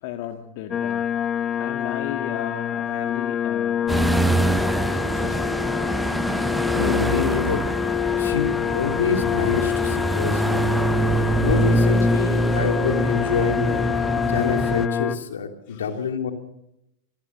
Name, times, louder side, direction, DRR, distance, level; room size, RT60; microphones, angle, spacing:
voice 1, 0.0-4.0 4.3-5.6 15.7-16.0, left 11 dB, 45° left, 5 dB, 1.9 m, -36 dB
sound 1, 0.7-15.2, left 10 dB, 25° left, 1.3 m, -26 dB
sound 2, 3.9-14.9, right 2 dB, 10° right, 0.8 m, -24 dB
voice 2, 6.4-7.6 8.1-10.6 11.4-13.8 14.3-16.3, left 6 dB, 65° left, 5 dB, 3.0 m, -26 dB
27.0 x 22.0 x 6.3 m, 0.86 s
figure-of-eight pair, 90°, 0 cm